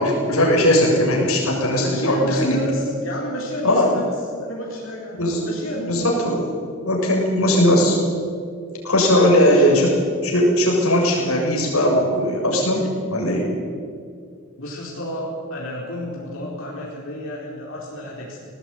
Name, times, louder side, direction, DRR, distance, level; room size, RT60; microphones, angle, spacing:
voice 1, 0.0-2.6 3.6-3.9 5.1-5.5 5.9-6.4 6.8-8.0 8.8-9.9 10.2-13.5, equal, 80° left, -2 dB, 7.1 m, -18 dB
voice 2, 1.8-4.1 4.4-6.0 9.1-9.7 14.6-18.5, equal, 65° left, -4 dB, 4.5 m, -31 dB
19.5 x 19.5 x 9.3 m, 2.2 s
head